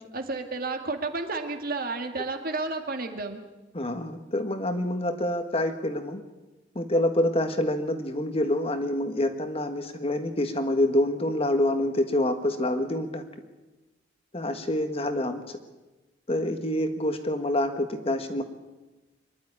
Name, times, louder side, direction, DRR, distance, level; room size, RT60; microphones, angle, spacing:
voice 1, 0.0-3.4, right 3 dB, 50° right, 5 dB, 2.0 m, -31 dB
voice 2, 3.7-6.2 6.7-13.2 14.3-15.6 16.3-18.4, left 1 dB, 30° left, 7 dB, 1.5 m, -27 dB
24.0 x 11.5 x 9.8 m, 1.1 s
head